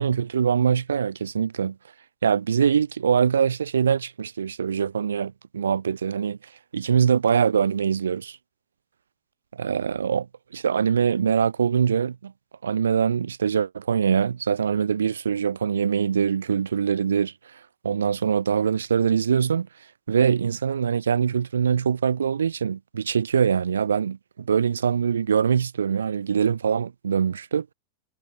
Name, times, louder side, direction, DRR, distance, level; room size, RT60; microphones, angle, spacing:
voice 1, 0.0-1.8 2.2-6.4 6.7-8.4 9.6-10.3 10.5-12.3 12.6-17.3 17.8-19.7 20.1-27.7, right 7 dB, 70° right, 0.4 m, -23 dB
figure-of-eight pair, 90°, 0 cm